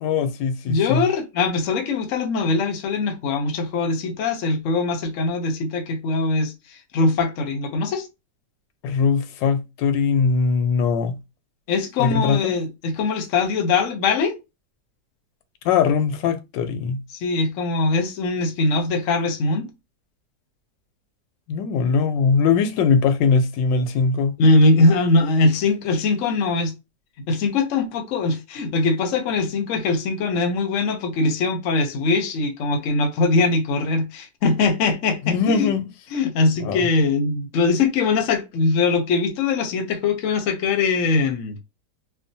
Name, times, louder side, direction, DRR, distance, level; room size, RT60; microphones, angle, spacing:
voice 1, 0.0-1.0 8.8-11.2 12.0-12.5 15.6-17.0 21.5-24.3 35.2-35.8 36.6-36.9, left 5 dB, 85° left, 1.3 m, -21 dB
voice 2, 0.7-8.1 11.7-14.4 17.2-19.7 24.4-26.7 27.3-35.7 36.1-41.6, left 3 dB, 65° left, 0.8 m, -21 dB
3.4 x 2.1 x 2.6 m
omnidirectional pair, 1.9 m